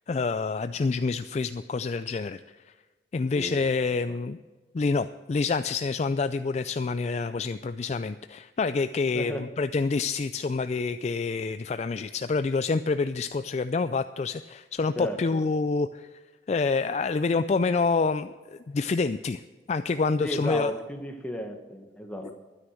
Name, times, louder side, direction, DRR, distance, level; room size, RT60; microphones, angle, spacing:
voice 1, 0.1-2.4 2.7-2.8 3.1-4.4 4.7-16.1 16.5-19.4 19.7-20.7, left 4 dB, 35° left, 11 dB, 0.3 m, -27 dB
voice 2, 3.3-4.2 9.1-9.4 15.0-15.4 20.2-22.4, equal, 5° left, 3 dB, 1.4 m, -34 dB
12.5 x 9.7 x 6.3 m, 1.3 s
head